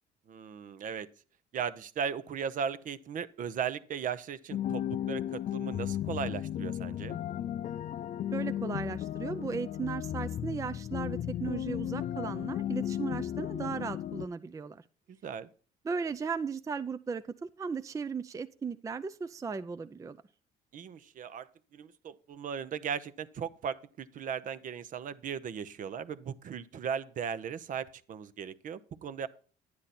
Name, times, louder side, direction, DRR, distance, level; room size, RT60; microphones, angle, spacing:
voice 1, 0.3-1.1 1.5-7.2 15.1-15.5 20.7-29.3, right 7 dB, 50° right, 14 dB, 0.8 m, -37 dB
sound 1, 4.5-14.3, left 11 dB, 45° left, 0.4 m, -35 dB
voice 2, 8.3-14.8 15.8-20.2, right 5 dB, 20° right, 11 dB, 0.4 m, -36 dB
10.5 x 9.6 x 4.2 m, 0.40 s
cardioid pair, 110°, 17 cm